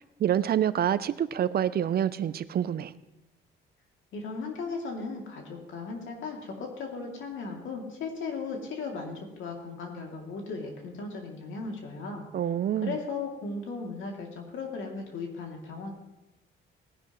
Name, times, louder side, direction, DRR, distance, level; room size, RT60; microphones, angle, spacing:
voice 1, 0.2-2.9 12.3-12.9, right 10 dB, 50° right, 16 dB, 0.5 m, -27 dB
voice 2, 4.1-12.2 12.8-15.9, left 4 dB, 75° left, 1 dB, 2.7 m, -36 dB
18.0 x 10.5 x 3.1 m, 0.98 s
cardioid pair, 90°, 20 cm